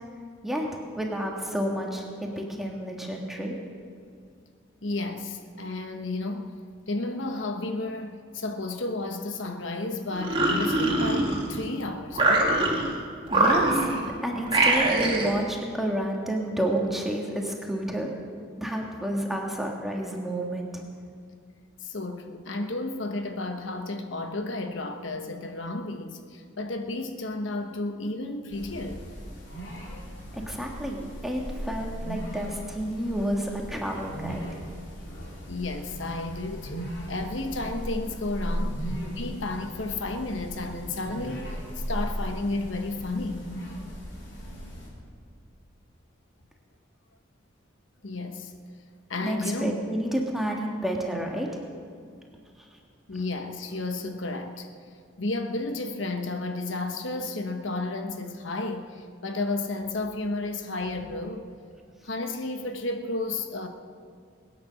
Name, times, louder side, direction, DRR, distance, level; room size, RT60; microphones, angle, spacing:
voice 1, 0.4-3.6 13.3-18.1 18.6-20.8 30.3-34.5 49.2-51.5, right 1 dB, ahead, 1.6 m, -30 dB
voice 2, 4.8-6.6 6.9-12.6 21.8-29.0 35.5-43.5 48.0-48.6 49.1-50.0 53.1-54.7 55.2-61.4 62.0-63.7, left 2 dB, 75° left, 1.1 m, -32 dB
sound 1, 10.1-11.7 12.1-12.9 13.3-14.1 14.5-15.4, right 2 dB, 25° right, 2.0 m, -23 dB
sound 2, 28.5-44.9, equal, 60° left, 4.4 m, -37 dB
21.0 x 9.4 x 6.4 m
head